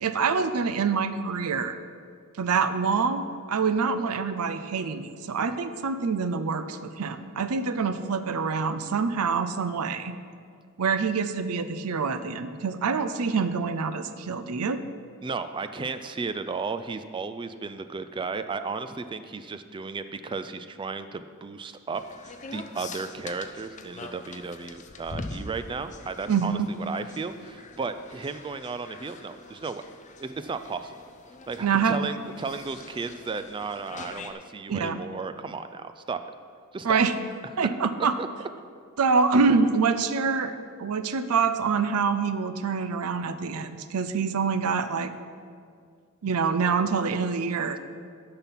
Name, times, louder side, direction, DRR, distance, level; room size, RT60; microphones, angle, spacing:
voice 1, 0.0-1.8 2.4-10.1 10.8-14.8 26.3-26.7 31.6-32.0 34.7-35.0 36.8-37.1 37.6-38.1 39.0-45.1 46.2-47.8, right 5 dB, 75° right, 11 dB, 0.5 m, -26 dB
voice 2, 15.2-29.8 30.2-30.9 31.5-36.2 36.7-37.0 38.2-38.3, right 4 dB, 20° right, 10 dB, 0.3 m, -34 dB
sound 1, 21.9-34.3, left 3 dB, 35° left, 0.6 m, -44 dB
10.5 x 5.8 x 5.8 m, 2.2 s
head